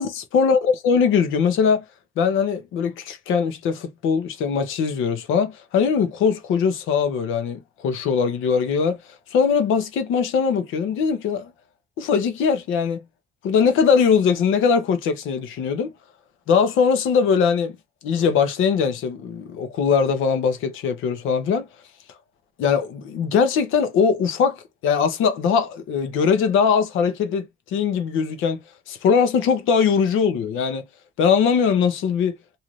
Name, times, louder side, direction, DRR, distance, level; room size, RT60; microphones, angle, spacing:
voice 1, 0.0-1.8 2.2-9.0 9.3-11.5 12.0-13.0 13.4-15.9 16.5-17.8 18.0-21.7 22.6-28.6 28.9-30.9 31.2-32.4, left 6 dB, 90° left, 0.8 m, -21 dB
2.7 x 2.5 x 3.0 m
cardioid pair, 90°, 20 cm